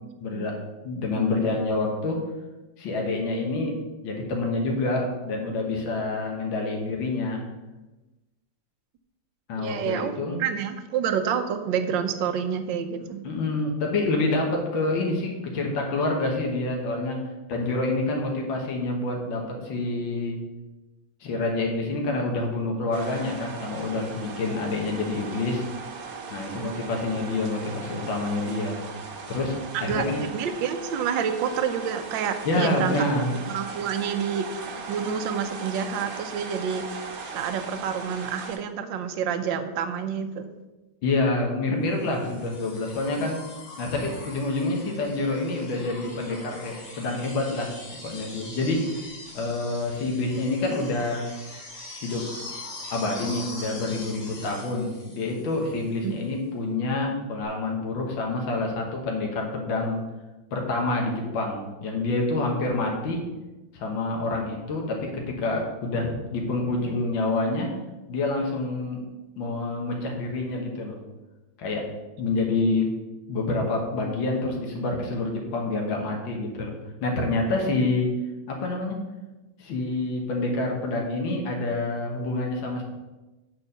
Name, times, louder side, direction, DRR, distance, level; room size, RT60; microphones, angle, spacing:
voice 1, 0.2-0.6 0.8-2.2 2.8-3.8 4.0-7.4 9.5-10.4 13.2-17.2 17.5-20.4 21.2-25.6 26.3-28.8 29.3-30.2 32.5-33.3 41.0-43.4 43.8-47.7 48.0-49.0 49.3-51.3 52.0-52.3 52.9-60.0 60.5-63.2 63.7-67.7 68.1-69.0 69.4-71.0 71.6-71.9 72.2-72.9 73.3-76.7 77.0-78.1 78.5-79.0 79.6-82.8, left 2 dB, 85° left, 0 dB, 2.1 m, -27 dB
voice 2, 9.6-10.1 10.4-13.3 26.5-26.7 29.7-33.0 33.3-36.8 37.3-40.5 43.2-43.3 56.0-56.1, right 7 dB, 80° right, 9 dB, 1.4 m, -28 dB
sound 1, 22.9-38.6, right 5 dB, 55° right, 1.3 m, -38 dB
sound 2, 42.0-56.0 57.4-57.5, left 2 dB, 40° left, 2.3 m, -42 dB
8.2 x 4.6 x 6.8 m, 1.1 s
omnidirectional pair, 2.1 m